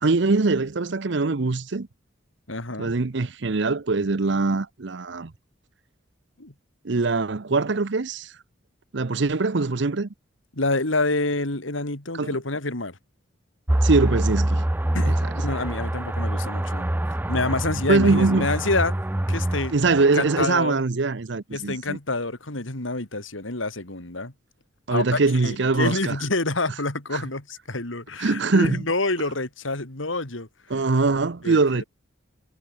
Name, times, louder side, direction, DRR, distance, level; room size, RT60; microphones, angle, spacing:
voice 1, 0.0-1.9 2.8-5.3 6.8-8.3 8.9-10.1 12.2-12.4 13.8-14.7 15.0-15.3 17.9-18.5 19.7-22.0 24.9-26.2 27.1-27.2 28.2-28.8 30.7-31.8, right 3 dB, 60° right, 0.8 m, -22 dB
voice 2, 2.5-2.9 6.4-6.5 10.5-13.0 14.9-16.9 17.3-18.9 19.3-19.7 20.0-20.8 21.5-24.3 24.9-30.5 31.4-31.6, left 2 dB, 85° left, 3.3 m, -27 dB
sound 1, 13.7-20.5, right 1 dB, 10° right, 0.4 m, -25 dB
head